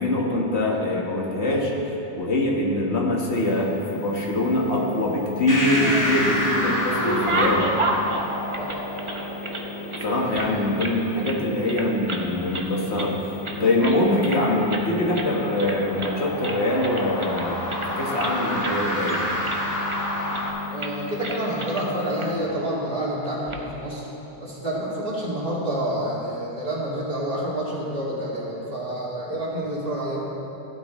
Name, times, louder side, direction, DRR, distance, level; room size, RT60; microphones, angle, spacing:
voice 1, 0.0-1.7 2.2-7.7 10.0-13.2 13.6-17.6 17.9-19.2, left 1 dB, 75° left, -2 dB, 1.8 m, -23 dB
sound 1, 3.3-22.4, left 4 dB, 50° left, 2.4 m, -37 dB
sound 2, 5.5-20.5, left 1 dB, 15° left, 1.7 m, -30 dB
sound 3, 5.5-6.3 6.7-9.6 9.9-11.0 11.2-11.4 11.7-12.3 12.5-13.2 13.4-14.4 14.7-14.9 15.1-15.3 15.6-16.2 16.4-18.3 18.6-18.8 19.1-20.0 20.3-20.5 20.8-21.0 21.2-21.9 22.2-22.3 23.3-23.6, right 2 dB, 30° right, 0.8 m, -30 dB
voice 2, 10.2-10.7 20.7-24.1 24.4-30.2, right 1 dB, 55° right, -6 dB, 2.6 m, -28 dB
15.0 x 12.0 x 3.1 m, 3.0 s
omnidirectional pair, 1.1 m